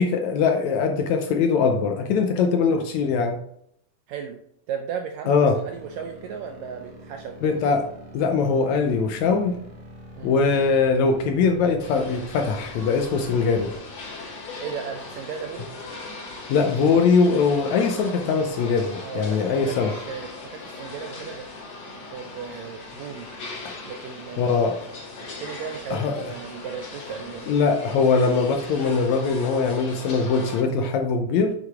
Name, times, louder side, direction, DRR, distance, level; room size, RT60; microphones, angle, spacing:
voice 1, 0.0-3.4 5.3-5.6 7.4-7.8 8.1-9.6 10.2-13.7 16.5-19.9 23.6-23.8 24.4-24.8 25.9-26.3 27.5-31.6, left 5 dB, 75° left, 5 dB, 1.8 m, -21 dB
voice 2, 4.1-4.4 4.7-7.7 10.2-10.3 14.6-15.7 19.0-21.5 22.1-23.3 23.8-24.9 25.4-27.5, right 7 dB, 80° right, 5 dB, 1.6 m, -36 dB
sound 1, 5.6-13.8, left 1 dB, 45° right, 1.9 m, -44 dB
sound 2, 11.8-30.6, left 3 dB, 50° left, 3.4 m, -39 dB
7.7 x 5.8 x 3.6 m, 0.72 s
omnidirectional pair, 3.8 m